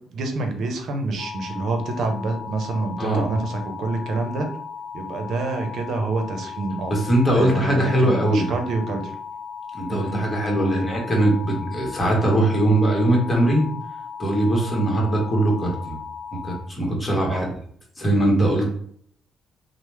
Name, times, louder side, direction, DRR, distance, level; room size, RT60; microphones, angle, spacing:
voice 1, 0.1-4.5 4.9-7.0 7.3-9.1 9.9-10.2 10.6-10.9 17.3-17.5, right 3 dB, 70° right, 5 dB, 0.6 m, -27 dB
sound 1, 1.2-16.6, left 6 dB, 70° left, 0.6 m, -36 dB
voice 2, 6.9-8.5 9.7-13.7 14.2-16.0 16.4-17.5 18.0-18.7, right 1 dB, 20° left, -1 dB, 1.2 m, -21 dB
3.0 x 2.0 x 3.2 m, 0.62 s
cardioid pair, 90°, 0 cm